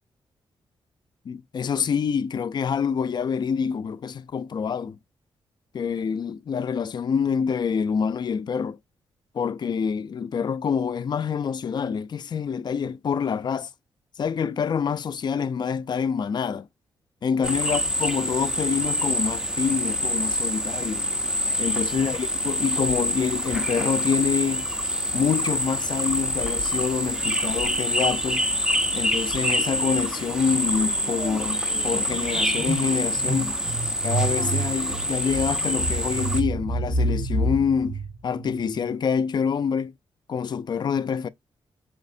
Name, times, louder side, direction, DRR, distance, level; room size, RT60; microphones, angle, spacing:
voice 1, 1.2-5.0 5.7-8.8 9.3-13.7 14.2-16.7 17.2-21.0 21.6-24.7 25.1-28.4 28.9-33.6 34.0-39.9 40.3-41.3, left 6 dB, 50° left, 0.5 m, -26 dB
sound 1, 17.4-36.4, equal, 5° right, 0.7 m, -26 dB
sound 2, 29.6-29.9 30.2-38.9, right 2 dB, 30° right, 1.1 m, -30 dB
5.0 x 3.0 x 2.6 m
cardioid pair, 90°, 9 cm